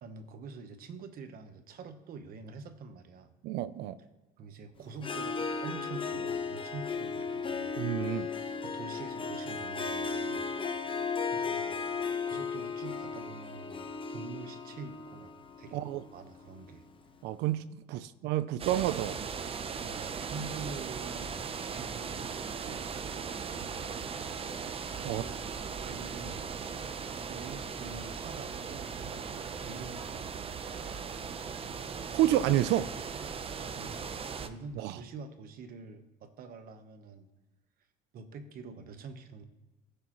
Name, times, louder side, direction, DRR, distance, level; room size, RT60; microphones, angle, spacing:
voice 1, 0.0-3.3 4.0-4.1 4.4-7.7 8.6-10.5 11.3-11.8 12.3-15.9 16.1-16.9 17.9-18.0 19.8-23.1 23.6-24.0 25.0-25.4 25.8-26.5 27.3-30.8 33.7-34.0 34.4-37.3 38.1-39.4, right 4 dB, 60° right, 1.0 m, -46 dB
voice 2, 3.4-4.0 7.8-8.3 15.7-16.0 17.2-19.3 25.0-25.2 32.1-32.9 34.8-35.0, right 13 dB, 85° right, 0.4 m, -29 dB
Harp, 5.0-16.8, left 5 dB, 30° left, 0.9 m, -36 dB
sound 1, 18.6-34.5, right 6 dB, 35° right, 0.6 m, -38 dB
15.5 x 6.6 x 3.0 m
cardioid pair, 110°, 17 cm